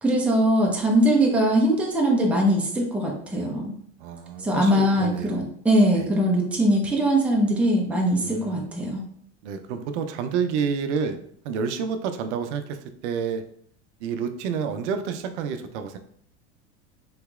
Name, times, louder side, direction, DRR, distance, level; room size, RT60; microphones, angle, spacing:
voice 1, 0.0-3.7 4.4-9.0, right 1 dB, 5° right, -2 dB, 0.7 m, -21 dB
voice 2, 4.0-5.4 6.0-6.1 8.2-8.7 9.4-11.2 11.4-13.4 14.0-16.0, right 6 dB, 75° right, 9 dB, 0.6 m, -29 dB
3.9 x 2.9 x 2.3 m, 0.62 s
supercardioid pair, 105°, 35 cm